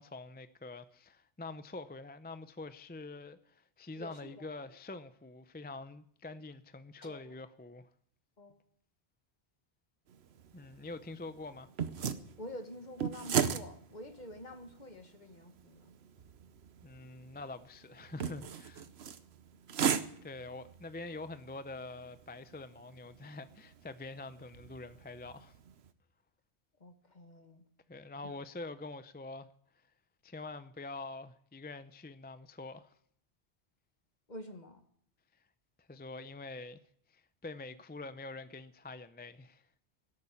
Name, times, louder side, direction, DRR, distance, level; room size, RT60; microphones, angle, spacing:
voice 1, 0.0-7.9 10.5-11.7 16.8-18.9 20.2-25.6 27.9-29.5 30.2-32.9 35.8-36.8 37.1-39.6, left 3 dB, 15° left, 0.3 m, -45 dB
voice 2, 4.0-4.4 7.0-7.4 8.4-8.5 12.4-15.9 26.8-27.6 28.2-28.3 34.3-34.8, left 1 dB, 45° left, 1.7 m, -48 dB
sound 1, 10.1-25.9, right 8 dB, 70° right, 1.1 m, -39 dB
17.5 x 8.7 x 8.4 m
omnidirectional pair, 1.1 m